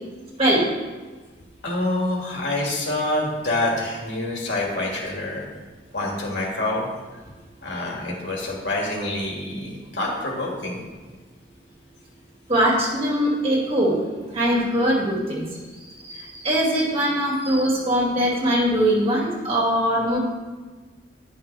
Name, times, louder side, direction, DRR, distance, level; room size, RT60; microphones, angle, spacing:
voice 1, 1.6-5.4 5.9-6.9 7.6-10.8, left 1 dB, 85° left, -2 dB, 2.0 m, -26 dB
voice 2, 12.5-15.4 16.0-20.2, equal, 35° right, -5 dB, 2.2 m, -21 dB
9.9 x 5.5 x 3.4 m, 1.3 s
head